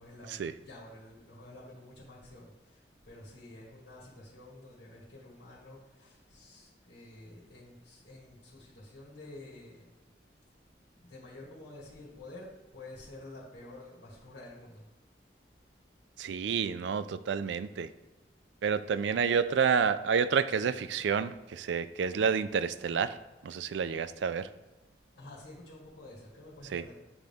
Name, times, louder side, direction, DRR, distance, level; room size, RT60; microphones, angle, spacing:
voice 1, 0.0-9.9 11.0-14.9 25.1-26.9, left 2 dB, 80° left, -6 dB, 2.0 m, -50 dB
voice 2, 16.2-17.9 18.6-23.2 23.4-24.5 26.7-26.8, right 6 dB, 85° right, 13 dB, 0.4 m, -29 dB
9.4 x 3.8 x 3.5 m, 1.1 s
head